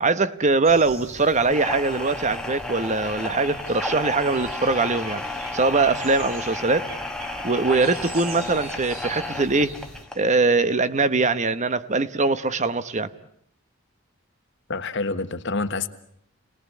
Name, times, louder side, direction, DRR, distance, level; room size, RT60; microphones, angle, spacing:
voice 1, 0.0-5.2 5.5-6.9 7.4-9.8 10.1-13.1, right 3 dB, 35° right, 1.0 m, -22 dB
sound 1, 0.6-10.1, right 1 dB, 70° right, 5.6 m, -41 dB
sound 2, 1.4-10.3, left 2 dB, 5° left, 1.3 m, -33 dB
voice 2, 14.7-15.9, left 3 dB, 55° left, 1.5 m, -27 dB
29.5 x 20.5 x 8.4 m
head